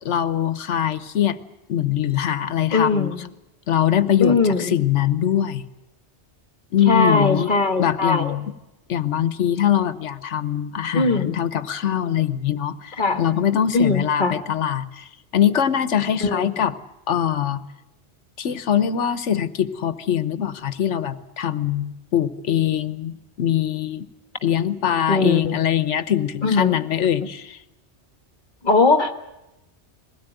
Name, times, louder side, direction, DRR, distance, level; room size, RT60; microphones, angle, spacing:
voice 1, 0.0-1.4 1.7-3.1 3.7-5.6 6.7-7.5 7.8-8.4 8.9-15.1 15.3-16.7 17.1-17.6 18.4-24.1 24.4-27.6, left 10 dB, 90° left, 14 dB, 1.3 m, -22 dB
voice 2, 2.7-3.3 4.2-4.8 6.9-8.4 10.9-11.3 13.0-13.2 13.7-14.4 16.2-16.5 25.1-25.6 26.4-26.8 28.6-29.1, left 3 dB, 45° left, 8 dB, 1.6 m, -20 dB
21.5 x 17.0 x 9.1 m, 0.94 s
omnidirectional pair, 1.2 m